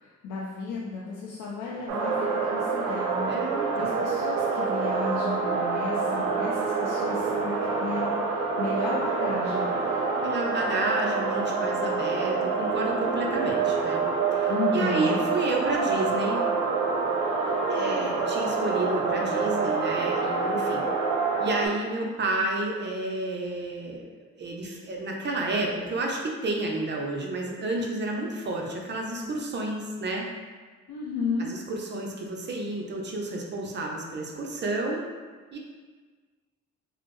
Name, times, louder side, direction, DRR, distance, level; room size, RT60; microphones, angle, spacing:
voice 1, 0.0-3.3 3.7-7.5 7.8-9.7 14.5-15.2 17.5-18.2 30.9-31.5, left 4 dB, 80° left, -5 dB, 0.5 m, -33 dB
sound 1, 1.9-21.7, right 4 dB, 80° right, 0.6 m, -27 dB
voice 2, 3.3-3.9 10.2-14.0 14.3-16.4 17.7-20.9 21.4-24.1 24.4-30.3 31.4-35.0 35.5-35.6, right 2 dB, 35° right, 0 dB, 0.5 m, -30 dB
3.3 x 2.0 x 3.1 m, 1.4 s
cardioid pair, 90°, 30 cm